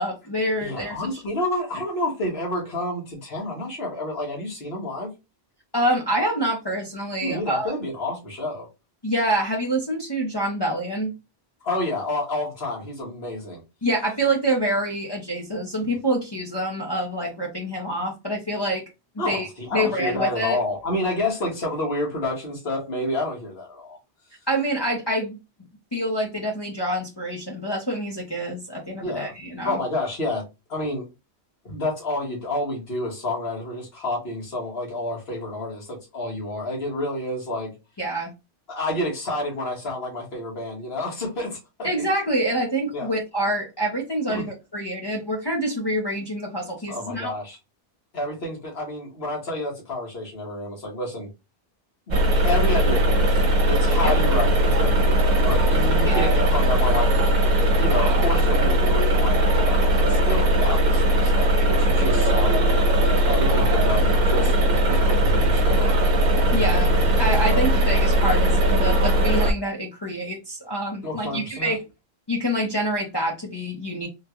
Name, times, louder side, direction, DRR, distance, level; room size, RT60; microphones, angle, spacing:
voice 1, 0.0-1.2 5.7-7.7 9.0-11.1 13.8-18.8 19.3-19.5 19.7-20.6 24.5-25.4 25.9-29.8 38.0-38.3 41.8-47.3 54.0-54.1 56.0-56.4 66.5-66.9 67.2-71.8 72.3-74.1, right 1 dB, 25° left, 0.8 m, -26 dB
voice 2, 0.6-5.1 7.2-8.7 11.6-13.6 19.2-24.0 29.0-29.3 29.7-30.4 30.7-31.1 31.7-37.7 38.7-41.9 42.9-43.1 44.3-44.5 46.9-47.6 48.1-51.3 52.1-53.4 53.7-57.1 57.8-66.3 67.5-67.6 71.0-71.7, left 1 dB, 65° left, 1.7 m, -29 dB
sound 1, 52.1-69.5, right 1 dB, 50° right, 0.7 m, -19 dB
3.7 x 2.3 x 2.8 m
omnidirectional pair, 1.1 m